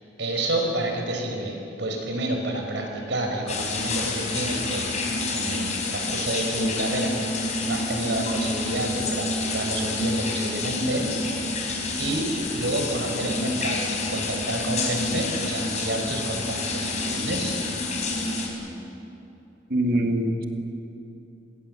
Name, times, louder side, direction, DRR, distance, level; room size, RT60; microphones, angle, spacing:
voice 1, 0.2-11.1 11.4-11.5 12.0-17.6, right 1 dB, 75° right, 2 dB, 5.1 m, -29 dB
sound 1, 3.5-18.5, left 2 dB, 40° left, 4.5 m, -28 dB
voice 2, 19.7-20.4, right 1 dB, 60° right, 4 dB, 2.3 m, -23 dB
26.5 x 21.0 x 7.8 m, 2.8 s
head